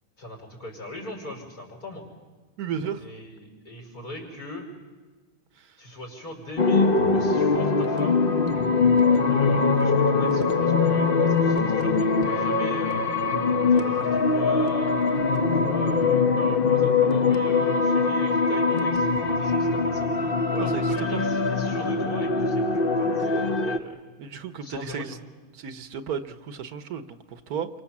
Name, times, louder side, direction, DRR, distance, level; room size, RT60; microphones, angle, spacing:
voice 1, 0.2-2.0 3.0-4.7 5.8-8.3 9.3-13.1 13.7-15.0 15.5-20.1 20.5-24.0 24.6-25.2, left 2 dB, 75° left, 0 dB, 5.8 m, -39 dB
voice 2, 2.6-3.0 5.6-5.7 20.6-21.2 24.2-25.2 25.5-27.7, right 7 dB, 75° right, 10 dB, 1.5 m, -34 dB
sound 1, 6.6-23.8, left 4 dB, 40° left, 1.1 m, -22 dB
28.5 x 24.0 x 7.3 m, 1.3 s
omnidirectional pair, 1.6 m